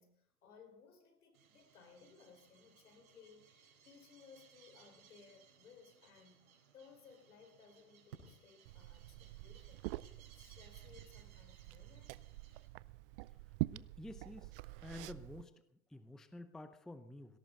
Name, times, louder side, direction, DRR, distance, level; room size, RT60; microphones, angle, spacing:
voice 1, 0.0-12.3, left 5 dB, 75° left, 7 dB, 5.1 m, -62 dB
sound 1, 1.3-12.7, right 7 dB, 65° right, 4.8 m, -64 dB
Liquid, 8.7-15.4, right 20 dB, 40° right, 0.5 m, -46 dB
voice 2, 13.7-14.5 14.8-15.5 15.9-17.4, left 1 dB, ahead, 11 dB, 0.6 m, -50 dB
18.5 x 17.5 x 4.1 m, 0.68 s
hypercardioid pair, 110°, 44 cm